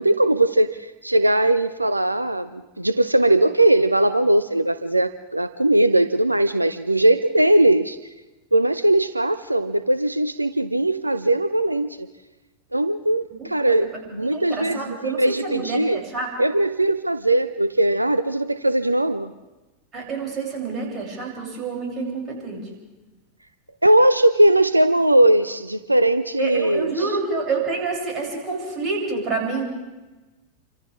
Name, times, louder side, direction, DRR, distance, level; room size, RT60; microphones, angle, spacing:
voice 1, 0.0-8.0 8.5-12.1 12.7-16.0 16.4-19.3 23.8-27.2, right 1 dB, 85° right, 12 dB, 0.6 m, -19 dB
voice 2, 13.4-13.7 14.3-16.3 19.9-22.6 26.4-29.6, right 4 dB, 25° right, -2 dB, 7.6 m, -28 dB
29.0 x 25.5 x 3.6 m, 1.1 s
figure-of-eight pair, 90°, 0 cm